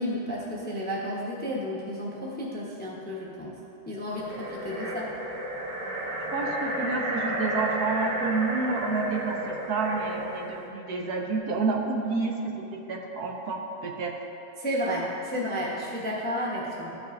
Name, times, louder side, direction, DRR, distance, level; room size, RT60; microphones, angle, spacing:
voice 1, 0.0-3.5 3.9-5.0 14.6-17.0, equal, 10° left, -4 dB, 0.5 m, -32 dB
sound 1, 4.2-10.6, right 1 dB, 45° right, 0.5 m, -32 dB
voice 2, 6.3-14.1, right 4 dB, 65° right, 1 dB, 1.1 m, -29 dB
13.5 x 5.7 x 2.5 m, 2.8 s
omnidirectional pair, 2.0 m